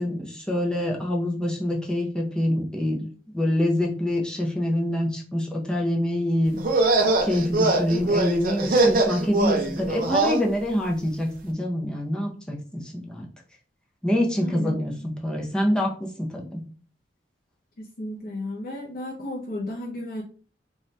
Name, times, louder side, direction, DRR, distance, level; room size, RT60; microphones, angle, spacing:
voice 1, 0.0-3.1 3.3-6.6 7.2-13.3 14.0-16.6, left 1 dB, 5° left, -1 dB, 0.6 m, -26 dB
sound 1, 6.6-10.4, right 2 dB, 50° right, 0.5 m, -22 dB
voice 2, 14.4-14.8 17.8-20.2, left 1 dB, 55° left, -4 dB, 0.6 m, -33 dB
2.6 x 2.3 x 3.1 m, 0.40 s
head